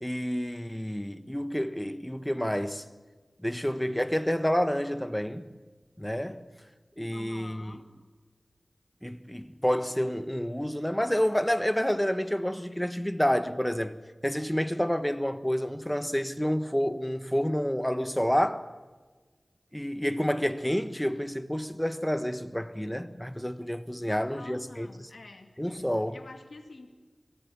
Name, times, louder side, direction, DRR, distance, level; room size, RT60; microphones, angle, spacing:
voice 1, 0.0-2.8 3.4-5.5 6.0-6.4 7.0-7.8 9.0-14.0 14.2-18.6 19.7-24.9 25.6-26.2, equal, 10° left, 1.4 m, -29 dB
voice 2, 7.1-7.8 24.0-25.5 26.1-26.9, left 3 dB, 85° left, 2.3 m, -47 dB
23.5 x 15.5 x 9.7 m
wide cardioid pair, 40°, 0 cm